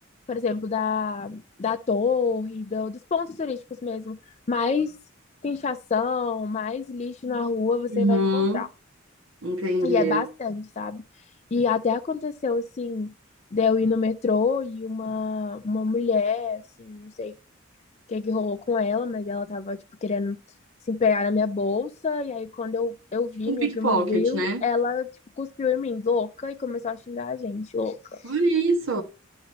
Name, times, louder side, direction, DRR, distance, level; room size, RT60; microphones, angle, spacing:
voice 1, 0.3-4.2 4.5-4.9 5.4-8.7 9.8-11.0 11.5-13.1 13.5-17.3 18.1-20.4 20.9-25.1 25.4-28.2, left 5 dB, 30° left, 0.4 m, -27 dB
voice 2, 7.9-8.6 9.4-10.2 23.4-24.6 28.2-29.0, right 1 dB, 70° right, 1.1 m, -24 dB
11.5 x 3.9 x 4.1 m
head